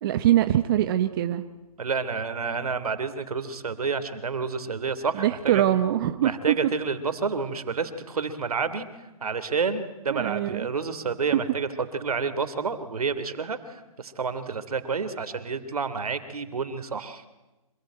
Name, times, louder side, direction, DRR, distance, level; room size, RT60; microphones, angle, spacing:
voice 1, 0.0-1.4 5.1-6.6 10.1-10.7, right 12 dB, 35° right, 10 dB, 1.1 m, -23 dB
voice 2, 1.8-5.7 6.2-8.9 9.2-17.2, right 5 dB, 75° right, 11 dB, 3.0 m, -29 dB
26.0 x 20.0 x 9.2 m, 1.1 s
hypercardioid pair, 145°, 19 cm